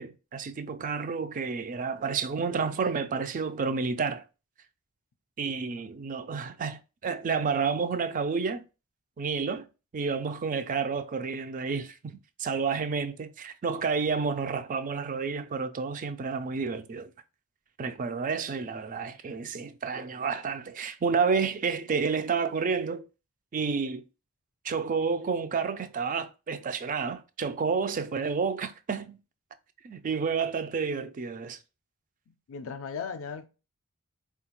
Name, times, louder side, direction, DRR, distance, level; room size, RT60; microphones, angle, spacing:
voice 1, 0.0-4.2 5.4-8.6 9.2-9.7 9.9-17.1 17.8-23.0 23.5-24.0 24.6-29.2 29.8-31.6, right 5 dB, 40° right, 0.4 m, -30 dB
voice 2, 32.3-33.5, left 5 dB, 65° left, 0.4 m, -37 dB
4.2 x 2.3 x 2.9 m
head